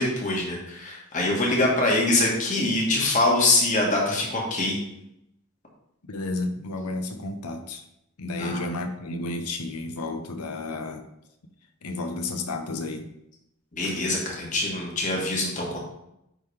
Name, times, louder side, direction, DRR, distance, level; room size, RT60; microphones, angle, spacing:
voice 1, 0.0-4.8 8.4-8.6 13.7-15.8, left 2 dB, 35° left, -2 dB, 1.6 m, -24 dB
voice 2, 6.1-7.8 8.2-11.0 11.8-13.1, left 2 dB, 85° left, 7 dB, 0.8 m, -32 dB
9.9 x 3.8 x 3.3 m, 0.82 s
head